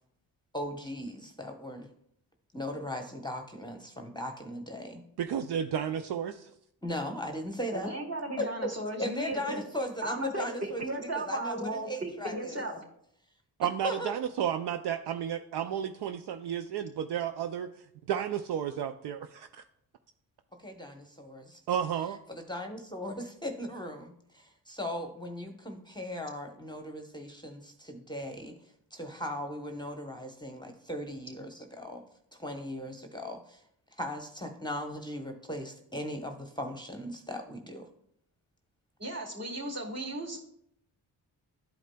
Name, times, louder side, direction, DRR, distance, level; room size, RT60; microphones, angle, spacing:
voice 1, 0.5-1.9 2.5-5.0 6.8-7.9 8.4-8.7 9.0-12.6 13.8-14.1 20.6-21.6 22.3-28.5 28.9-32.0 32.3-33.6 33.9-37.9, left 1 dB, 10° left, 4 dB, 0.9 m, -38 dB
voice 2, 5.2-6.5 13.6-17.7 18.1-19.6 21.7-22.2, right 9 dB, 70° right, 8 dB, 0.5 m, -32 dB
voice 3, 7.7-9.6 10.0-12.8 39.0-40.4, right 1 dB, 40° right, -1 dB, 2.2 m, -35 dB
11.5 x 4.9 x 2.2 m, 0.73 s
cardioid pair, 60°, 42 cm